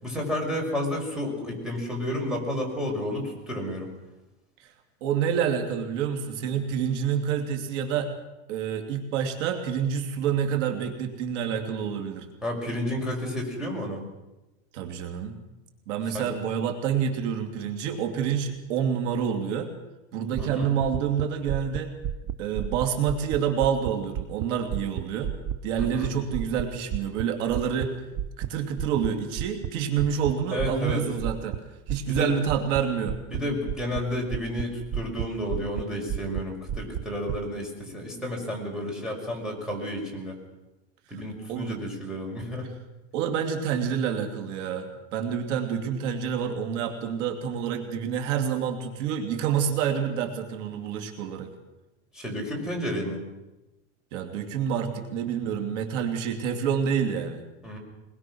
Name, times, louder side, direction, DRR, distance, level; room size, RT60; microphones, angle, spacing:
voice 1, 0.0-3.9 12.4-14.0 16.1-16.3 20.4-20.7 25.8-26.1 30.5-31.0 32.1-32.3 33.3-40.4 41.1-42.7 52.1-53.2 57.6-57.8, left 1 dB, ahead, -1 dB, 5.6 m, -31 dB
voice 2, 5.0-8.1 8.5-12.3 14.7-15.4 15.9-19.7 20.1-21.9 22.4-25.3 25.6-27.9 28.4-31.6 31.9-33.2 41.5-41.8 43.1-51.5 54.1-57.4, right 8 dB, 75° right, 4 dB, 3.2 m, -28 dB
sound 1, 20.4-24.5 24.7-27.9 28.1-28.5 28.8-29.1 29.4-29.7 30.0-30.3 30.6-30.9 31.2-31.6 31.9-32.2 32.5-32.8 33.1-33.4 33.7-34.0 34.3-35.3 35.5-35.8 36.1-36.4 36.7-37.4, right 10 dB, 40° right, 0.8 m, -31 dB
23.0 x 21.5 x 6.3 m, 0.99 s
supercardioid pair, 150°, 37 cm